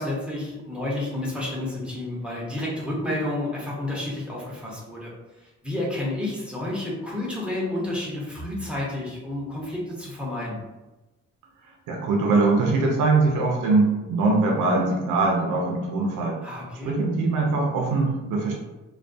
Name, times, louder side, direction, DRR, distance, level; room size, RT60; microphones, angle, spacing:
voice 1, 0.0-5.1 5.4-10.6 16.4-16.9, left 1 dB, 5° right, -5 dB, 0.8 m, -30 dB
voice 2, 11.9-16.4 16.8-18.5, right 3 dB, 80° right, -1 dB, 0.6 m, -22 dB
2.3 x 2.2 x 2.5 m, 1.1 s
cardioid pair, 90°, 30 cm